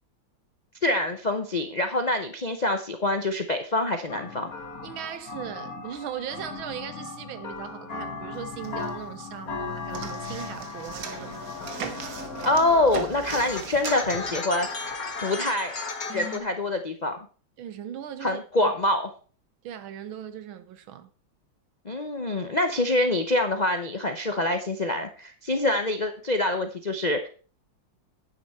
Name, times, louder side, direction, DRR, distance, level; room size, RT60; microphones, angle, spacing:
voice 1, 0.8-4.5 12.4-15.8 16.1-17.2 18.2-19.1 21.8-27.3, left 2 dB, 75° left, 0.4 m, -25 dB
sound 1, 4.1-16.4, left 4 dB, 45° left, 2.0 m, -36 dB
voice 2, 4.8-11.4 17.6-18.7 19.6-21.1, right 9 dB, 85° right, 1.8 m, -38 dB
sound 2, 8.3-9.2 9.5-14.9, right 6 dB, 70° right, 2.0 m, -39 dB
9.8 x 9.2 x 4.3 m
omnidirectional pair, 2.2 m